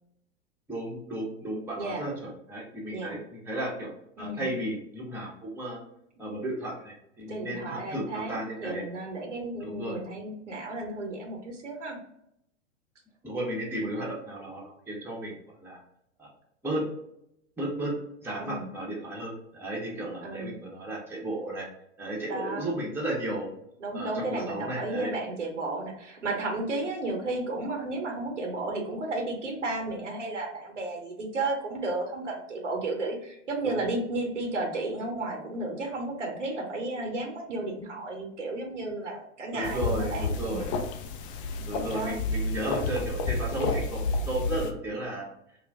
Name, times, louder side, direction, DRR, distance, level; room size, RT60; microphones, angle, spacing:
voice 1, 0.7-3.9 4.2-5.8 6.2-8.8 9.6-10.0 13.2-15.8 16.2-16.3 16.6-16.9 17.6-21.7 22.0-23.5 23.9-25.1 33.6-33.8 39.5-40.7 41.7-45.3, right 1 dB, 5° right, -4 dB, 0.8 m, -34 dB
voice 2, 1.7-2.1 2.9-3.2 4.2-4.4 7.3-12.0 18.4-18.7 20.2-20.6 22.3-22.8 23.8-40.7 41.9-42.1, right 2 dB, 85° right, 1 dB, 0.9 m, -33 dB
sound 1, 39.6-44.7, left 3 dB, 50° left, 0.5 m, -30 dB
2.3 x 2.2 x 3.3 m, 0.76 s
hypercardioid pair, 105°, 36 cm